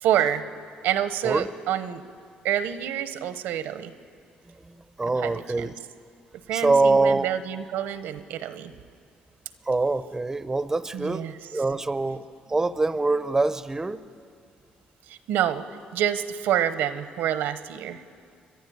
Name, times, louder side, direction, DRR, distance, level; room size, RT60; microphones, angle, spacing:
voice 1, 0.0-0.5 0.8-2.0 2.4-3.9 5.2-5.3 5.6-5.7 6.5-8.7 10.9-11.3 15.1-15.6 15.9-18.0, right 10 dB, 90° right, 12 dB, 1.0 m, -27 dB
voice 2, 4.6-5.7 6.5-7.3 9.6-11.3 11.5-14.0, right 3 dB, 15° right, 13 dB, 0.6 m, -24 dB
29.0 x 11.5 x 9.6 m, 2.3 s
cardioid pair, 125°, 3 cm